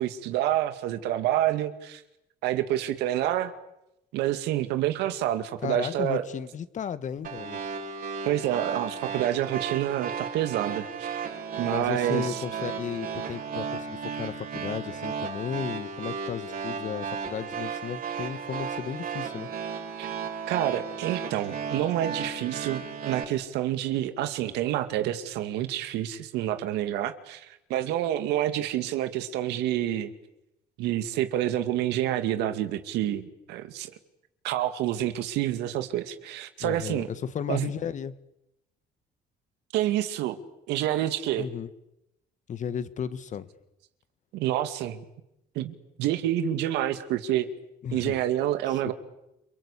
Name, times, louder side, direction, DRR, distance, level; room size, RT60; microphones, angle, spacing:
voice 1, 0.0-2.0 2.4-3.5 4.1-6.3 8.3-11.1 11.6-12.4 20.0-20.1 20.5-30.1 30.8-33.9 34.4-37.1 37.5-37.7 39.7-40.4 40.7-41.5 44.3-45.0 45.6-47.5 47.9-48.9, right 12 dB, 90° right, 10 dB, 2.2 m, -28 dB
voice 2, 5.6-7.6 11.6-19.5 36.6-38.1 41.4-41.7 42.5-43.5 47.8-48.2 48.7-48.8, left 8 dB, 45° left, 15 dB, 1.5 m, -34 dB
sound 1, 7.2-23.2, right 6 dB, 55° right, 6.3 m, -34 dB
29.5 x 23.0 x 8.4 m, 0.86 s
cardioid pair, 110°, 17 cm